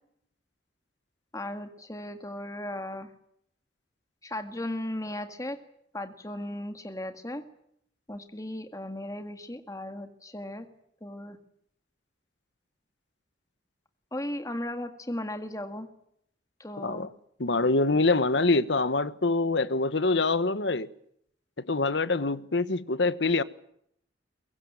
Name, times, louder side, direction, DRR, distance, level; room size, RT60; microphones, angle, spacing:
voice 1, 1.3-3.1 4.2-5.6 5.9-7.4 8.1-10.7 11.0-11.4 14.1-15.9 16.6-17.1, left 1 dB, 20° left, 2.0 m, -36 dB
voice 2, 16.8-17.1 17.4-20.9 21.6-23.4, left 3 dB, 75° left, 1.3 m, -25 dB
23.5 x 22.5 x 8.9 m
head